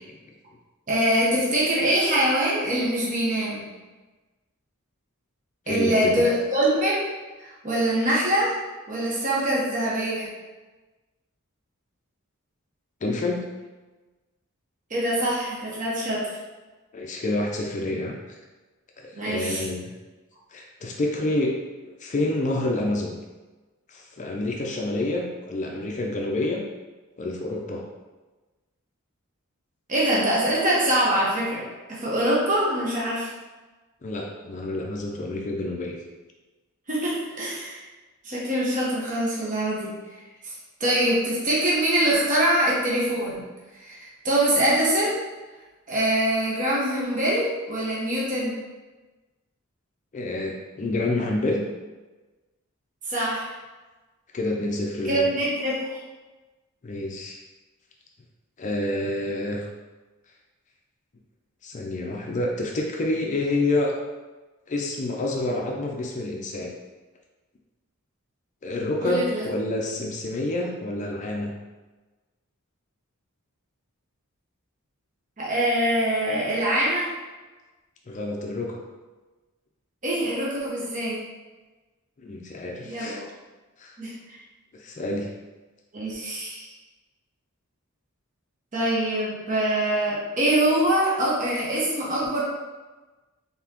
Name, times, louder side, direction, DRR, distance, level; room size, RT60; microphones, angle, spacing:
voice 1, 0.9-3.7 5.7-7.1 7.4-8.5 8.9-10.3 14.9-16.3 19.2-19.6 29.9-33.3 36.9-37.8 38.2-39.9 40.4-40.5 40.8-43.4 43.7-44.0 44.2-45.2 45.9-48.5 53.1-53.5 55.0-56.0 69.0-69.4 75.4-77.1 80.0-81.2 82.8-83.2 84.0-84.4 85.9-86.7 88.7-92.4, right 1 dB, 35° right, -6 dB, 0.9 m, -24 dB
voice 2, 5.7-6.2 13.0-13.4 16.9-18.1 19.0-19.9 20.5-21.5 21.8-23.2 23.9-26.6 27.2-27.8 34.0-36.0 50.1-51.6 54.3-55.3 56.8-57.4 58.6-59.7 61.6-63.9 64.7-66.7 68.6-71.5 78.1-78.8 82.2-83.2 83.8-83.9 84.7-85.3, left 2 dB, 35° left, 0 dB, 0.4 m, -28 dB
4.0 x 3.6 x 2.9 m, 1.2 s
head